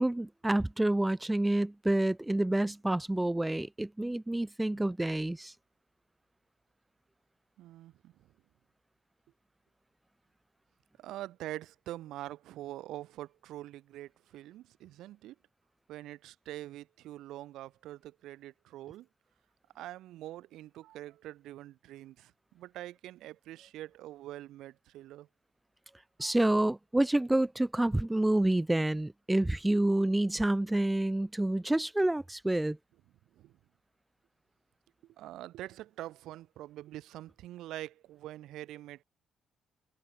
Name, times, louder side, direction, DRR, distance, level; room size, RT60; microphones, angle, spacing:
voice 1, 0.0-5.5 26.2-32.8, right 1 dB, 10° right, 2.2 m, -28 dB
voice 2, 7.6-8.1 11.0-15.4 15.9-19.1 19.7-25.3 26.2-26.3 33.4-33.5 35.2-39.0, right 14 dB, 85° right, 7.2 m, -44 dB
cardioid pair, 90°, 0 cm